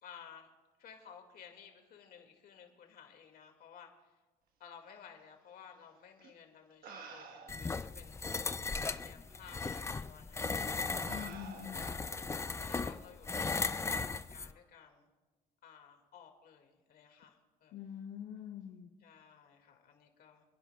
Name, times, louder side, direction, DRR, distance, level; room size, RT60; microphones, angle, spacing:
voice 1, 0.0-0.5 0.8-4.2 4.6-8.3 8.8-10.7 11.7-12.0 12.6-15.1 15.6-17.8 19.0-20.4, left 7 dB, 60° left, 3 dB, 2.3 m, -55 dB
sound 1, 6.2-6.3 6.8-7.8 8.6-8.7 9.6-9.8 10.4-10.6 11.1-12.0 13.3-13.5, right 5 dB, 60° right, 1.4 m, -51 dB
sound 2, 7.5-14.5, left 4 dB, 15° left, 0.4 m, -37 dB
voice 2, 11.1-12.0 17.7-18.9, left 9 dB, 85° left, 2 dB, 0.9 m, -45 dB
28.5 x 10.5 x 2.4 m, 1.2 s
cardioid pair, 110°, 17 cm